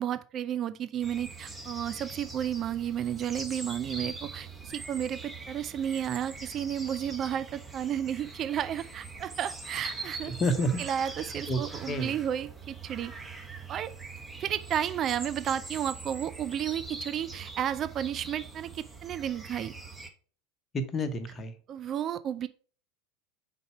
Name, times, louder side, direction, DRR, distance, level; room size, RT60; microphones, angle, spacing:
voice 1, 0.0-10.3 10.8-13.1 13.7-13.9 14.4-19.8 21.7-22.5, right 10 dB, 40° right, 13 dB, 0.4 m, -32 dB
sound 1, 1.0-20.1, right 3 dB, 10° right, 1.1 m, -42 dB
voice 2, 10.3-10.9 11.5-12.2 20.7-21.5, equal, 30° left, 8 dB, 1.0 m, -30 dB
5.0 x 4.1 x 4.7 m, 0.41 s
figure-of-eight pair, 80°, 0 cm